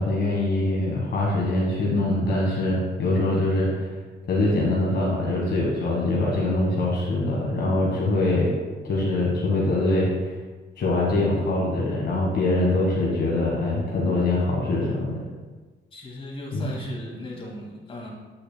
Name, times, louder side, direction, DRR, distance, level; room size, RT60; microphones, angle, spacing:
voice 1, 0.0-3.9 4.3-8.5 8.8-10.1 10.8-15.2 16.5-16.7, left 2 dB, 60° left, -3 dB, 1.5 m, -23 dB
voice 2, 15.9-18.1, left 1 dB, 25° left, -3 dB, 1.9 m, -36 dB
8.4 x 6.4 x 2.2 m, 1.3 s
cardioid pair, 90°, 20 cm